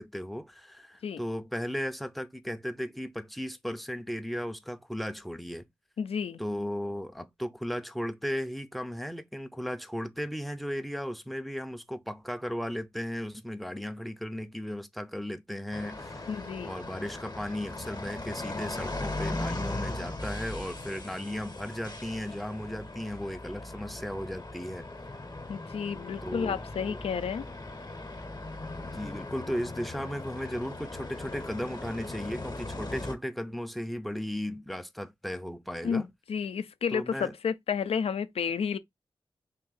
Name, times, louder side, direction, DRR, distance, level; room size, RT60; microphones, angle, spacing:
voice 1, 0.0-5.7 6.4-24.9 26.2-27.0 28.7-36.1 36.9-37.3, equal, ahead, 0.5 m, -36 dB
voice 2, 6.0-6.4 16.3-16.7 25.5-27.5 35.8-38.8, left 6 dB, 90° left, 0.4 m, -31 dB
sound 1, 15.7-33.1, left 2 dB, 40° left, 0.9 m, -39 dB
3.6 x 2.6 x 3.9 m
wide cardioid pair, 85°, 10 cm